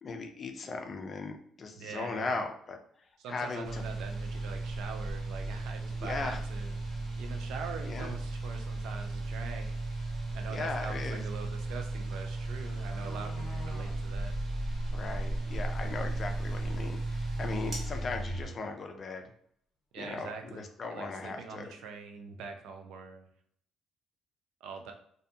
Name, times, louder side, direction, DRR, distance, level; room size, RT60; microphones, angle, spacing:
voice 1, 0.0-2.8 3.3-3.8 6.0-6.4 7.8-8.2 10.5-11.3 14.9-19.3 20.0-21.7, left 3 dB, 45° left, 4 dB, 0.4 m, -38 dB
voice 2, 1.7-2.3 3.2-6.8 7.2-9.7 10.3-14.3 19.9-20.6 20.9-23.3 24.6-24.9, right 5 dB, 80° right, 4 dB, 0.4 m, -43 dB
sound 1, 3.6-18.5, right 2 dB, 40° right, 1.2 m, -35 dB
sound 2, 6.9-7.0 7.3-7.7 9.1-9.2 9.5-9.6 11.9-12.0 12.3-14.0 14.4-14.5 14.8-14.9 15.3-15.4 15.8-15.9 18.7-18.8 19.1-19.2 20.0-20.1 20.5-20.8 21.0-21.8 22.1-22.2, left 3 dB, 20° left, 0.9 m, -51 dB
2.6 x 2.2 x 2.7 m, 0.65 s
cardioid pair, 85°, 0 cm